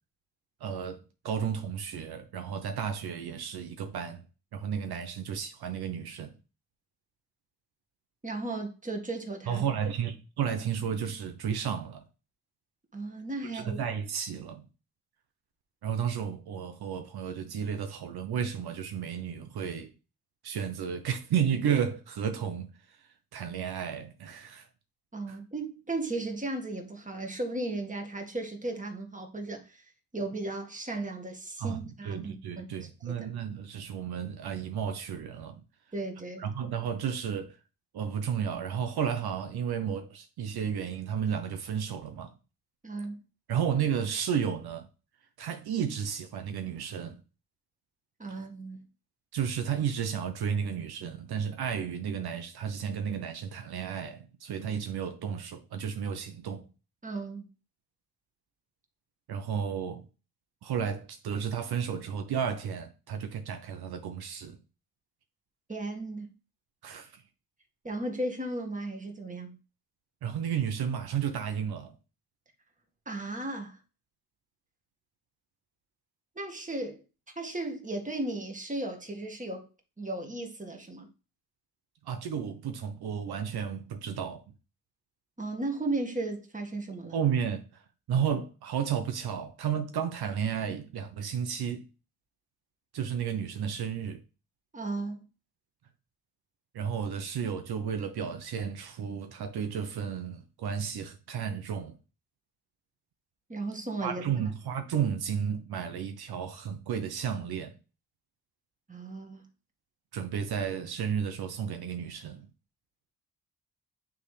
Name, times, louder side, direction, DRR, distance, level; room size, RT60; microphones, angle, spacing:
voice 1, 0.6-4.2 4.5-6.3 9.5-12.1 13.5-14.7 15.8-19.9 20.4-22.7 23.3-24.7 25.3-25.4 31.6-35.6 36.4-37.6 37.9-42.3 43.5-44.9 45.4-47.2 48.3-48.4 49.3-56.7 59.3-60.0 60.6-64.6 66.8-67.1 70.2-71.9 82.0-84.4 87.1-87.8 88.1-91.9 92.9-94.2 96.7-102.0 104.0-107.8 110.1-112.5, right 8 dB, 80° right, 0.9 m, -32 dB
voice 2, 8.2-9.6 12.9-13.8 25.1-29.8 30.1-33.3 35.9-36.5 42.8-43.2 48.2-48.8 57.0-57.5 65.7-66.3 67.8-69.6 73.1-73.8 76.4-77.0 77.4-79.7 80.0-81.1 85.4-87.2 94.7-95.2 103.5-104.4 108.9-109.4, right 2 dB, 20° right, 1.8 m, -35 dB
9.2 x 3.5 x 3.3 m
cardioid pair, 70°, 38 cm